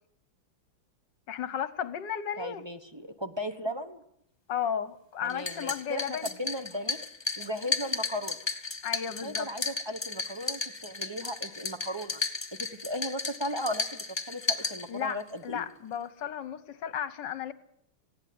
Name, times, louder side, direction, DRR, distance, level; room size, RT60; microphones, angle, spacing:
voice 1, 1.3-2.6 4.5-6.3 8.8-9.5 14.9-17.5, left 8 dB, 60° left, 14 dB, 1.5 m, -34 dB
voice 2, 2.4-4.0 5.2-7.0 7.4-8.4 9.2-12.2 12.5-15.6, equal, 20° right, 8 dB, 0.7 m, -36 dB
sound 1, 5.3-15.3, left 4 dB, 20° left, 0.7 m, -34 dB
19.5 x 16.5 x 9.4 m, 0.75 s
omnidirectional pair, 2.3 m